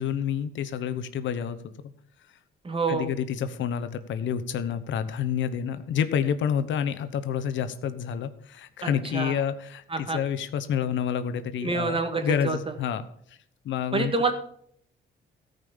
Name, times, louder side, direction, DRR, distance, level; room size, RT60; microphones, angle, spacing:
voice 1, 0.0-1.6 2.9-13.0 13.3-13.4 13.6-14.1, left 8 dB, 70° left, 11 dB, 0.9 m, -28 dB
voice 2, 2.6-3.1 8.8-9.4 9.9-10.2 11.6-12.6 13.9-14.3, right 3 dB, 25° right, 7 dB, 1.8 m, -27 dB
13.5 x 5.4 x 7.1 m, 0.65 s
cardioid pair, 90°, 20 cm